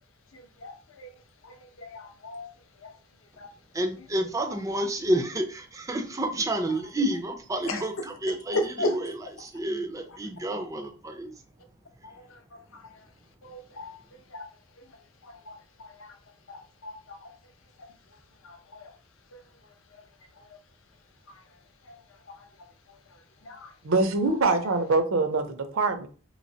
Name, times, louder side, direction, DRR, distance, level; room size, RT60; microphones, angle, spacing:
voice 1, 0.3-1.1 1.4-2.5 2.8-2.9 3.4-3.5 7.7-7.8 8.5-9.0 12.0-13.0 13.4-13.9 14.3-14.5 15.2-16.2 16.5-17.3 18.4-18.9 19.3-19.4 20.4-20.5 21.9-22.0 22.4-22.5 23.4-23.7, left 1 dB, 70° left, 0.6 m, -36 dB
voice 2, 3.7-11.3, right 1 dB, 15° right, 0.3 m, -30 dB
voice 3, 23.8-26.1, right 3 dB, 75° right, 0.6 m, -24 dB
3.0 x 2.8 x 2.7 m
head